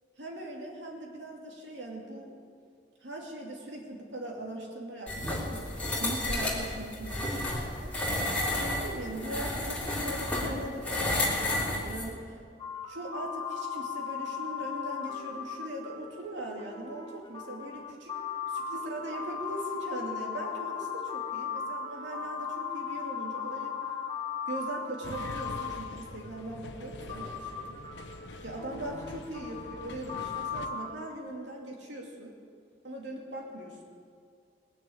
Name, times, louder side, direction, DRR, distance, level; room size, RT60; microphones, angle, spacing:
voice 1, 0.2-2.3 3.0-5.7 6.0-7.9 8.2-12.3 12.9-18.1 18.5-23.7 24.5-27.7 28.4-32.3 32.8-33.8, right 1 dB, 85° right, -1 dB, 2.6 m, -40 dB
sound 1, 5.1-12.1, left 1 dB, 5° left, 2.9 m, -31 dB
sound 2, 12.6-26.4 27.1-30.9, left 6 dB, 25° left, 1.1 m, -37 dB
sound 3, 25.0-30.7, left 2 dB, 80° left, 1.0 m, -45 dB
20.5 x 6.8 x 8.7 m, 2.2 s
head